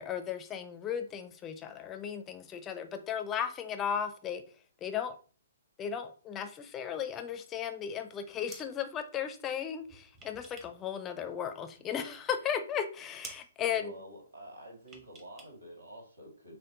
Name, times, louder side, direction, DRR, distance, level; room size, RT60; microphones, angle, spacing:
voice 1, 0.0-4.4 4.8-5.1 5.8-13.9, left 8 dB, 20° left, 8 dB, 0.4 m, -35 dB
sound 1, 8.2-8.8 9.8-10.9 11.1-12.0 12.4-12.5 12.8-12.9 13.2-13.5 14.8-15.6 15.8-15.9, right 3 dB, 20° right, 0.8 m, -51 dB
voice 2, 13.7-16.6, right 1 dB, 85° right, 0 dB, 1.7 m, -49 dB
6.4 x 2.1 x 2.7 m, 0.41 s
figure-of-eight pair, 130°, 0 cm